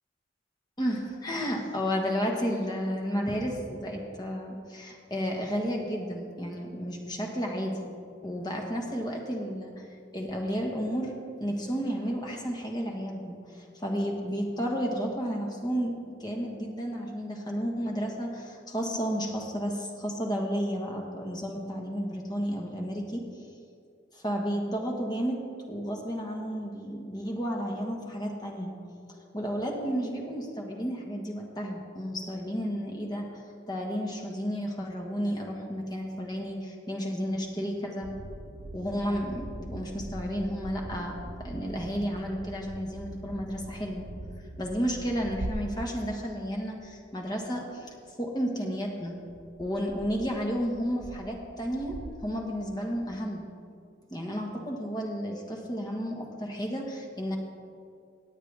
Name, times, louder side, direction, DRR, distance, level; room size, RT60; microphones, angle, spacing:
voice 1, 0.8-7.8 8.2-9.9 10.1-11.1 11.4-15.9 16.2-23.2 24.1-25.4 25.7-28.7 29.3-38.1 38.7-44.1 44.6-47.9 48.2-49.1 49.6-53.4 54.1-57.4, equal, 20° left, 0 dB, 1.4 m, -32 dB
sound 1, 38.0-46.9 47.3-47.7 48.0-48.1 49.3-53.0, right 1 dB, 85° right, 0.8 m, -42 dB
17.5 x 8.8 x 3.4 m, 2.3 s
head